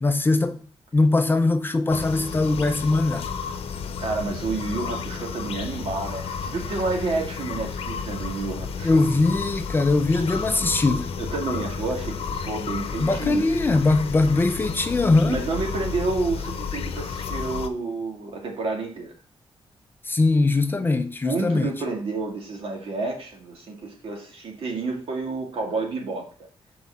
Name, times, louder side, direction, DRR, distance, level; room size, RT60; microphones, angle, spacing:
voice 1, 0.0-0.6 0.9-3.3 8.8-11.1 13.0-15.4 20.1-21.7, left 3 dB, 20° left, 0.6 m, -21 dB
sound 1, 1.9-17.7, left 6 dB, 80° left, 0.8 m, -32 dB
voice 2, 3.7-9.0 11.2-13.5 15.2-19.1 21.2-26.3, right 3 dB, 70° right, 2.2 m, -30 dB
6.3 x 4.7 x 5.5 m
wide cardioid pair, 155°, 10 cm